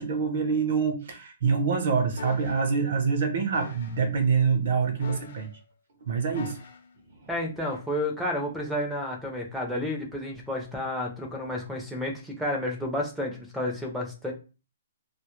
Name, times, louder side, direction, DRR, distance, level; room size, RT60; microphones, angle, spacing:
voice 1, 0.0-5.5 6.0-6.6 7.2-7.3, right 5 dB, 50° right, 7 dB, 0.6 m, -26 dB
sound 1, 2.2-2.6 3.5-4.0 5.0-5.6 6.3-6.9 7.7-7.9, left 5 dB, 55° left, 0.6 m, -42 dB
voice 2, 7.3-14.3, left 1 dB, ahead, 0 dB, 0.5 m, -31 dB
2.1 x 2.0 x 3.0 m, 0.32 s
hypercardioid pair, 170°, 0 cm